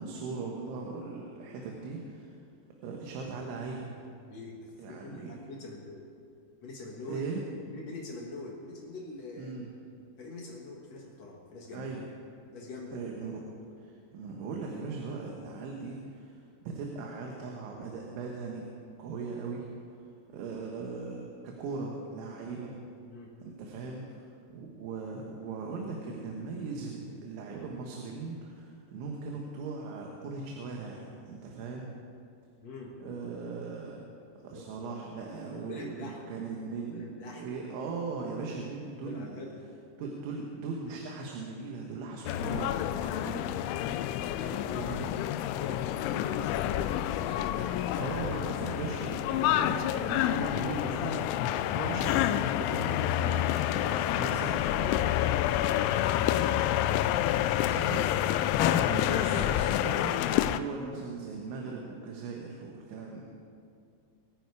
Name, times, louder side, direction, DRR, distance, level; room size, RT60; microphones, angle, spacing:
voice 1, 0.0-2.3 2.8-4.0 4.8-5.3 7.1-7.4 9.4-9.7 11.7-12.0 12.9-13.4 13.8-16.4 16.7-18.7 19.0-19.7 20.3-22.7 23.5-24.3 24.5-31.9 33.0-34.0 34.4-39.3 40.0-44.1 44.8-45.0 48.0-55.2 57.7-58.1 58.6-60.2 60.5-63.3, right 4 dB, 90° right, 0 dB, 3.7 m, -39 dB
voice 2, 4.3-6.0 6.6-7.3 7.7-9.5 10.2-11.9 12.5-13.0 23.1-23.4 32.6-33.0 34.5-34.7 35.5-36.2 36.9-37.5 39.0-39.7 43.0-43.3 44.2-44.9 45.5-47.5, left 2 dB, 65° left, -1 dB, 1.7 m, -44 dB
sound 1, 42.3-60.6, left 12 dB, 85° left, 2.9 m, -28 dB
23.5 x 9.4 x 4.8 m, 2.4 s
omnidirectional pair, 5.3 m